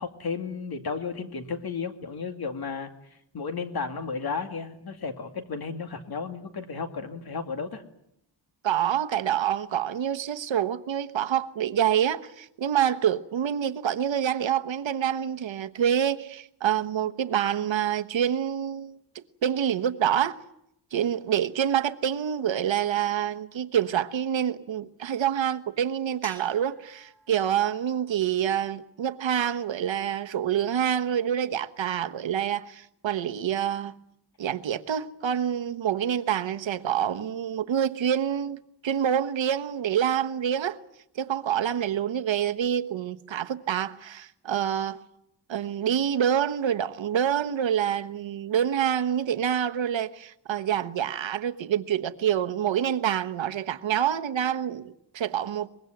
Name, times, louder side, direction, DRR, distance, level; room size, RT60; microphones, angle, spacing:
voice 1, 0.0-2.9 3.3-7.8, left 5 dB, 55° left, 2.5 m, -33 dB
voice 2, 8.6-19.0 19.4-20.4 20.9-33.9 34.4-40.8 41.2-45.0 45.5-55.7, right 9 dB, 80° right, 1.2 m, -27 dB
sound 1, 26.2-28.7, equal, 5° left, 3.5 m, -50 dB
24.0 x 22.0 x 9.1 m
wide cardioid pair, 175°, 44 cm